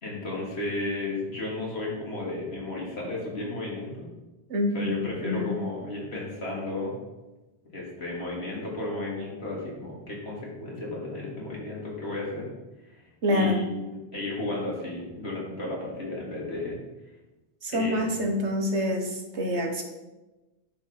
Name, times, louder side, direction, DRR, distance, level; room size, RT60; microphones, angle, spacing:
voice 1, 0.0-4.1 4.7-6.9 7.7-12.5 12.8-16.8 17.7-18.2, left 2 dB, 65° left, -4 dB, 3.2 m, -33 dB
voice 2, 4.5-4.9 5.2-5.6 13.2-13.6 17.6-19.8, left 1 dB, 85° right, 3 dB, 1.7 m, -26 dB
11.0 x 5.7 x 5.8 m, 1.1 s
omnidirectional pair, 1.1 m